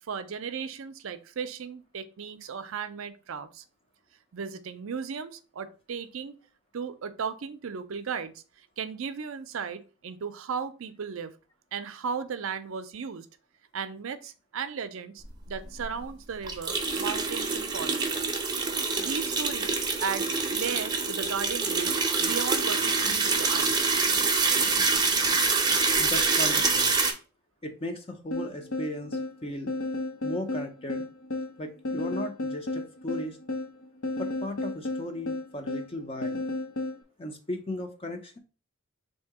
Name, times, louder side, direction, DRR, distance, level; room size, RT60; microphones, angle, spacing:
voice 1, 0.1-3.6 4.3-6.4 6.7-11.3 11.7-13.3 13.7-18.0 19.0-21.9 22.2-23.9, right 6 dB, 65° right, 11 dB, 0.5 m, -36 dB
sound 1, 15.5-15.6 15.8-15.9 16.4-27.1, right 4 dB, 20° right, 0.6 m, -26 dB
voice 2, 26.0-27.0 27.6-29.7 30.2-31.0 31.6-33.4 34.2-36.4 37.2-38.4, left 1 dB, 25° left, 5 dB, 0.5 m, -36 dB
sound 2, 28.3-37.0, left 2 dB, 80° left, 0.8 m, -33 dB
3.6 x 2.7 x 4.6 m, 0.35 s
head